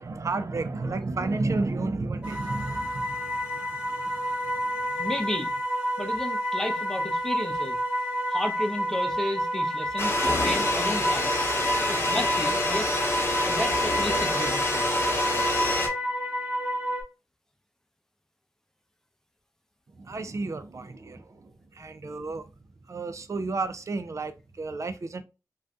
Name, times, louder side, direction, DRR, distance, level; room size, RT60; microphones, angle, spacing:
voice 1, 0.0-4.1 4.5-4.9 20.0-22.5 22.9-25.2, right 3 dB, 50° right, 0.4 m, -32 dB
sound 1, 2.2-17.0, equal, 15° right, 1.0 m, -29 dB
voice 2, 5.0-5.5 6.0-7.8 8.3-11.3 11.9-13.1 13.4-14.9, left 1 dB, 5° left, 0.6 m, -33 dB
sound 2, 10.0-15.9, left 2 dB, 35° left, 0.9 m, -27 dB
2.6 x 2.3 x 3.5 m
wide cardioid pair, 85°, 7 cm